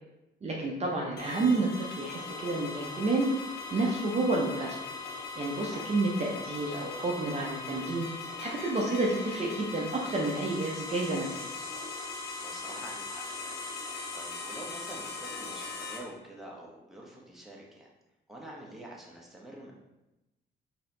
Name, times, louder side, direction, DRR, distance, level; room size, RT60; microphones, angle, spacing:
voice 1, 0.4-3.3 3.7-4.8 5.4-8.1 8.4-11.4, right 2 dB, 35° right, -2 dB, 0.7 m, -30 dB
sound 1, 1.2-16.0, left 4 dB, 50° left, 1.1 m, -39 dB
voice 2, 12.4-17.9 18.3-19.7, right 1 dB, ahead, -3 dB, 1.0 m, -47 dB
4.1 x 2.8 x 3.8 m, 0.98 s
cardioid pair, 90°, 20 cm